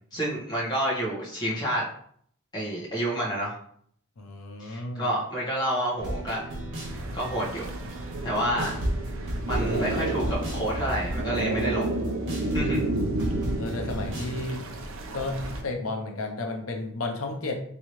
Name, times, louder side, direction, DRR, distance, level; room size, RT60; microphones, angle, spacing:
voice 1, 0.1-1.9 2.5-3.6 4.6-6.4 7.1-7.7 8.2-8.8 9.5-11.9 12.5-12.8, right 1 dB, 20° left, -6 dB, 1.3 m, -29 dB
voice 2, 4.2-5.1 13.6-14.6 15.1-17.6, left 2 dB, 85° left, 3 dB, 0.7 m, -32 dB
sound 1, 6.0-14.3, equal, 60° right, 1.3 m, -34 dB
sound 2, 6.8-15.6, right 2 dB, 75° right, 0.6 m, -31 dB
3.6 x 3.1 x 3.1 m, 0.62 s
head